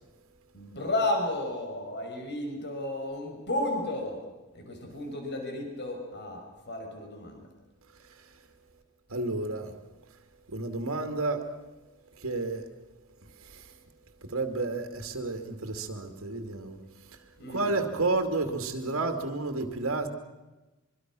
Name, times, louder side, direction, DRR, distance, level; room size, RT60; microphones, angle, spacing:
voice 1, 0.5-4.2 4.5-7.5 17.4-17.8, left 1 dB, 55° left, 5.8 m, -33 dB
voice 2, 8.0-8.4 9.1-9.8 10.5-11.4 12.1-12.7 13.4-13.8 14.2-17.2 17.5-20.1, right 3 dB, 70° right, 2.4 m, -31 dB
24.5 x 24.5 x 6.2 m
head